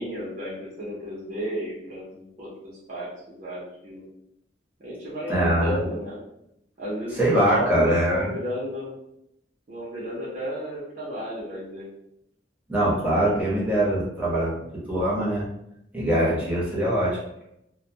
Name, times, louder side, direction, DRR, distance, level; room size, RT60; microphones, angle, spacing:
voice 1, 0.0-4.1 4.8-6.2 6.8-9.0 9.7-11.9, equal, 45° right, -8 dB, 0.6 m, -33 dB
voice 2, 5.3-5.8 7.2-8.3 12.7-14.5 14.9-15.5 15.9-17.2, right 1 dB, 10° right, -8 dB, 0.8 m, -22 dB
2.2 x 2.1 x 2.7 m, 0.80 s
head